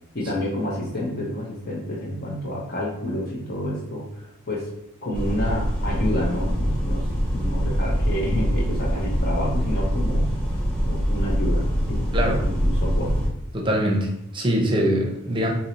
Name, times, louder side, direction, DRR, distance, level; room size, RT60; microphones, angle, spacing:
voice 1, 0.1-4.7 5.0-10.3 10.8-13.1, left 1 dB, 50° left, -4 dB, 0.8 m, -29 dB
sound 1, 5.1-13.3, equal, 5° left, 0.9 m, -24 dB
voice 2, 13.5-15.5, equal, 25° right, 0 dB, 0.7 m, -23 dB
2.9 x 2.7 x 4.3 m, 0.79 s
head